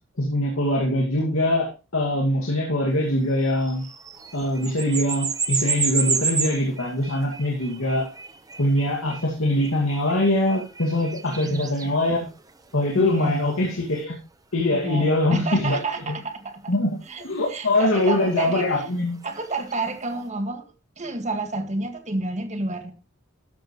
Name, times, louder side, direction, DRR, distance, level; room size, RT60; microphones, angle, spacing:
voice 1, 0.2-3.9 4.3-8.1 8.6-12.3 12.7-14.2 14.5-16.2 16.7-19.2, left 1 dB, 85° left, 2.3 m, -23 dB
sound 1, 3.4-14.0 15.8-15.9 17.0-20.0, right 5 dB, 20° right, 1.1 m, -31 dB
voice 2, 13.0-13.4 14.7-16.8 17.1-17.3 17.5-18.7 19.2-20.7 21.0-22.9, right 2 dB, 35° right, 2.0 m, -30 dB
13.0 x 10.5 x 3.2 m
head